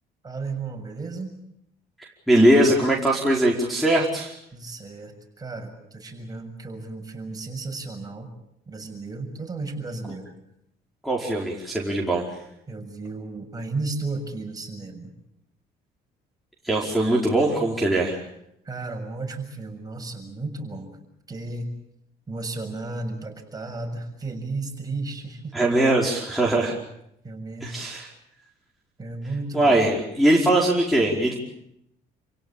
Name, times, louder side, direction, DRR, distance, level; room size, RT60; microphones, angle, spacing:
voice 1, 0.2-1.4 4.5-8.3 8.7-10.3 12.7-15.1 18.6-21.0 21.3-21.7 22.3-25.6 26.4-26.8 27.2-27.8 29.0-29.9, right 3 dB, 20° right, 3 dB, 6.9 m, -34 dB
voice 2, 2.0-4.3 11.0-12.3 16.6-18.2 25.5-26.8 27.6-28.1 29.5-31.4, right 1 dB, ahead, -5 dB, 4.9 m, -21 dB
29.5 x 17.0 x 8.7 m, 0.79 s
cardioid pair, 110°, 17 cm